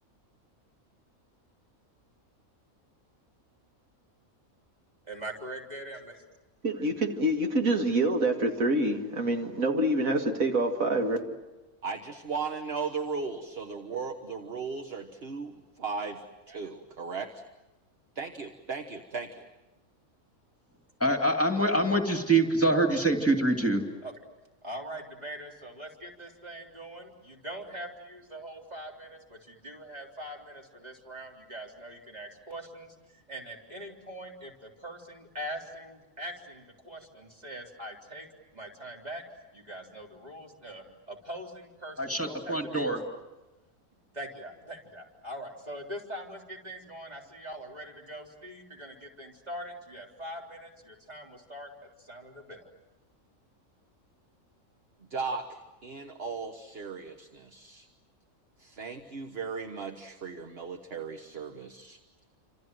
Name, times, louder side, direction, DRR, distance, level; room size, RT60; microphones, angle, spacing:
voice 1, 5.1-6.3 24.0-24.1 24.6-38.3 38.5-39.2 39.5-43.0 44.1-51.7 52.0-52.7, right 1 dB, 30° right, 4.0 m, -42 dB
voice 2, 6.6-11.3, right 1 dB, 85° right, 2.5 m, -26 dB
voice 3, 11.8-17.4 18.1-19.5 55.1-57.9 58.6-62.0, right 5 dB, 50° right, 1.5 m, -37 dB
voice 4, 21.0-23.8 42.0-43.0, right 2 dB, 10° left, 2.4 m, -25 dB
28.5 x 26.5 x 7.8 m
omnidirectional pair, 1.4 m